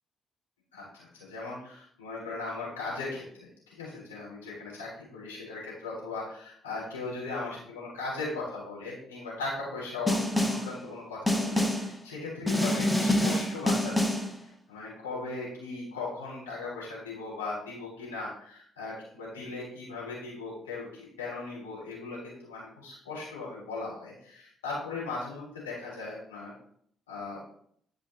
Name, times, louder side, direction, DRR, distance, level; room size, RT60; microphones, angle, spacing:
voice 1, 0.7-14.1 14.4-26.5 27.1-27.4, left 3 dB, 90° left, -6 dB, 3.3 m, -38 dB
Snare drum, 10.1-10.7 11.3-11.9 12.5-14.3, left 1 dB, 5° left, 1.2 m, -26 dB
11.5 x 5.0 x 2.8 m, 0.63 s
hypercardioid pair, 45°, 0 cm